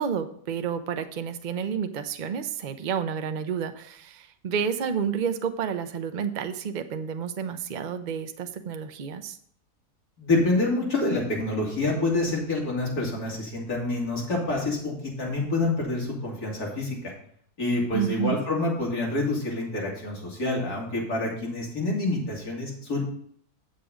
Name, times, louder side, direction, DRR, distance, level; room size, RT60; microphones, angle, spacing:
voice 1, 0.0-9.4 17.9-18.4, right 7 dB, 60° right, 8 dB, 0.5 m, -30 dB
voice 2, 10.2-17.1 17.6-23.0, left 2 dB, 70° left, -3 dB, 3.2 m, -27 dB
8.1 x 6.7 x 5.0 m, 0.62 s
omnidirectional pair, 1.6 m